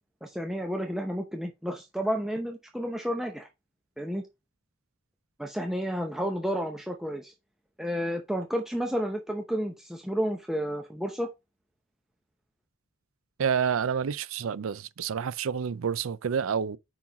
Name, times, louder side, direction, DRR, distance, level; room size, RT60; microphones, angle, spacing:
voice 1, 0.2-3.5 4.0-4.2 5.4-7.3 7.8-11.3, equal, ahead, 0.8 m, -31 dB
voice 2, 13.4-16.8, right 7 dB, 80° right, 0.4 m, -29 dB
5.6 x 4.7 x 5.1 m
head